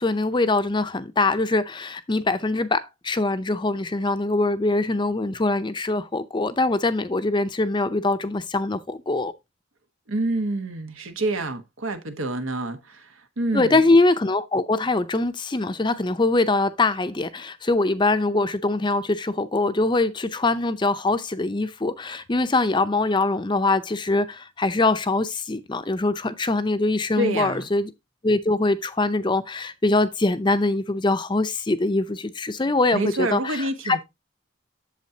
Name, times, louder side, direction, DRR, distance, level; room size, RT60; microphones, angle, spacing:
voice 1, 0.0-9.3 13.5-27.9 28.2-34.0, left 2 dB, 25° left, 0.5 m, -23 dB
voice 2, 10.1-13.8 27.1-27.7 32.9-34.0, right 2 dB, 85° right, 1.3 m, -27 dB
8.3 x 7.2 x 2.7 m
head